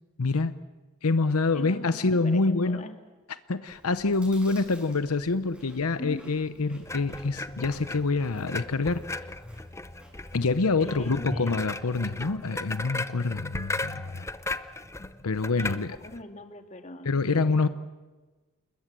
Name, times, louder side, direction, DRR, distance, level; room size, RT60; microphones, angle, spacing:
voice 1, 0.2-0.6 1.0-2.9 3.5-9.0 10.3-14.3 15.2-16.0 17.0-17.7, left 3 dB, 85° left, 12 dB, 0.8 m, -26 dB
voice 2, 1.5-3.0 4.6-4.7 6.0-6.2 10.8-11.6 15.0-17.7, left 1 dB, 35° left, 5 dB, 2.2 m, -43 dB
Chewing mastication, 3.7-11.0, equal, 5° right, 6.4 m, -54 dB
sound 1, 6.8-16.2, left 2 dB, 15° left, 0.7 m, -36 dB
29.0 x 21.5 x 7.6 m, 1.3 s
head